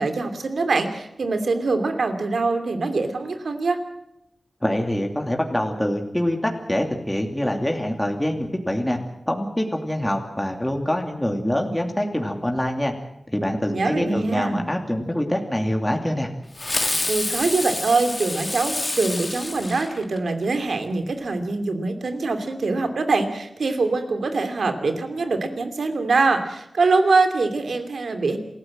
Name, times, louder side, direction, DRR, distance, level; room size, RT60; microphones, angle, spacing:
voice 1, 0.0-3.8 13.7-14.6 17.1-28.4, right 3 dB, 90° right, 7 dB, 2.8 m, -23 dB
voice 2, 4.6-9.0 9.3-12.9 13.3-16.3, left 1 dB, 10° left, 2 dB, 2.8 m, -25 dB
Fireworks, 16.6-20.4, left 2 dB, 30° left, 2.1 m, -28 dB
27.5 x 15.0 x 7.7 m, 0.84 s
wide cardioid pair, 75°, 0 cm